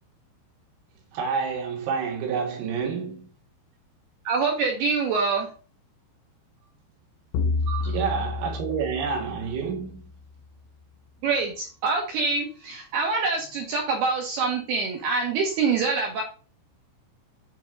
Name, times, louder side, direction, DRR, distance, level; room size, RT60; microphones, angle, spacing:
voice 1, 1.1-3.3 7.8-10.1, right 6 dB, 85° right, 4.6 m, -29 dB
voice 2, 4.2-5.5 7.7-7.9 11.2-16.2, right 4 dB, 70° right, 2.6 m, -25 dB
sound 1, 7.3-10.1, left 4 dB, 90° left, 3.7 m, -30 dB
9.2 x 4.5 x 3.8 m
omnidirectional pair, 5.9 m